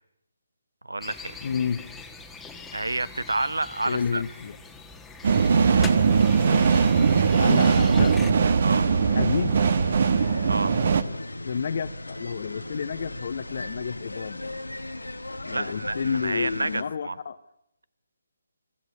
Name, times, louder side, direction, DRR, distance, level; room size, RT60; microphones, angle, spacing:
voice 1, 0.8-1.4 2.7-4.2 8.6-8.9 10.5-10.8 15.5-17.2, right 2 dB, 75° right, 1.0 m, -29 dB
sound 1, 1.0-8.3, left 4 dB, 5° left, 1.4 m, -41 dB
voice 2, 1.4-1.9 3.8-4.6 7.1-8.2 9.0-9.6 11.4-14.4 15.4-17.4, left 6 dB, 45° left, 0.8 m, -30 dB
sound 2, 5.2-11.0, right 5 dB, 50° right, 1.3 m, -20 dB
sound 3, 8.7-16.8, left 2 dB, 85° left, 1.5 m, -37 dB
24.0 x 14.0 x 9.7 m
figure-of-eight pair, 145°, 0 cm